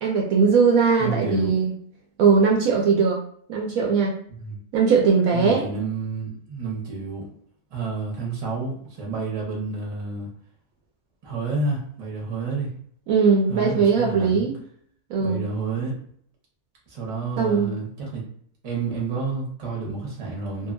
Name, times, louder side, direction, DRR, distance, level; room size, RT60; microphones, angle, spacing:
voice 1, 0.0-1.7 2.2-3.2 3.5-4.1 4.7-5.6 13.1-14.6 15.1-15.4 17.4-17.8, right 5 dB, 70° right, 0 dB, 0.9 m, -19 dB
voice 2, 1.0-1.5 4.4-4.6 5.3-7.3 7.7-10.3 11.2-12.7 13.5-14.5 15.2-15.9 16.9-18.2 18.6-20.7, right 4 dB, 30° right, -2 dB, 0.6 m, -29 dB
2.7 x 2.5 x 2.5 m, 0.63 s
omnidirectional pair, 1.6 m